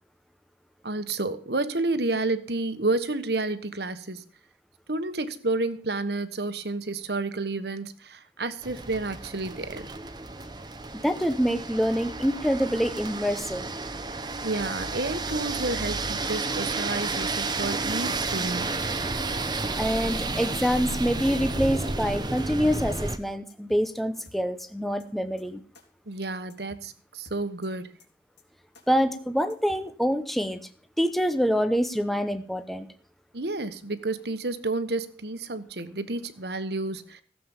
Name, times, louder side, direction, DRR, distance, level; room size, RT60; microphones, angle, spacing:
voice 1, 0.8-4.2 4.9-9.9 14.4-18.8 26.1-27.9 33.3-37.2, right 2 dB, 65° right, 1.3 m, -30 dB
sound 1, 8.6-23.2, right 3 dB, 25° right, 1.0 m, -31 dB
voice 2, 11.0-13.7 19.8-25.6 28.9-30.6 31.0-32.9, equal, ahead, 0.8 m, -26 dB
sound 2, 18.3-18.7 19.0-19.1 19.4-19.5 19.7-19.9 20.1-20.2 20.5-20.9 21.2-21.7 22.0-22.1 22.4-22.5 22.7-22.8 23.1-23.2 23.5-23.9 24.2-24.7 25.0-25.1 25.4-25.5 25.7-25.9 26.1-26.2 26.5-26.9 27.2-27.7 28.0-28.1 28.4-28.5 28.7-28.9 29.1-29.2 29.5-29.9, left 3 dB, 80° left, 3.8 m, -53 dB
16.0 x 7.7 x 7.3 m
head